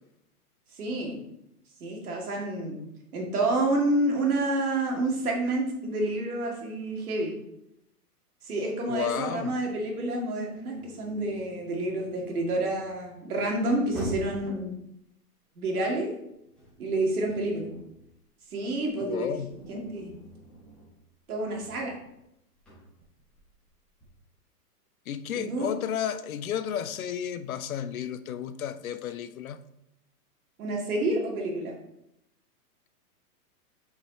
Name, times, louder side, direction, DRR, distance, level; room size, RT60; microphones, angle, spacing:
voice 1, 0.7-1.2 1.8-2.8 3.1-7.4 8.4-14.7 15.6-16.1 16.8-17.7 18.5-19.4 19.7-20.2 21.3-22.0 25.3-25.7 30.6-31.7, right 2 dB, 65° right, 2.2 m, -29 dB
voice 2, 8.9-9.6 19.0-19.5 25.1-29.6, left 9 dB, 60° left, 0.5 m, -32 dB
sound 1, 10.7-14.5 16.0-18.1 18.4-24.2, right 1 dB, ahead, 1.1 m, -45 dB
6.1 x 4.9 x 4.2 m
hypercardioid pair, 175°, 47 cm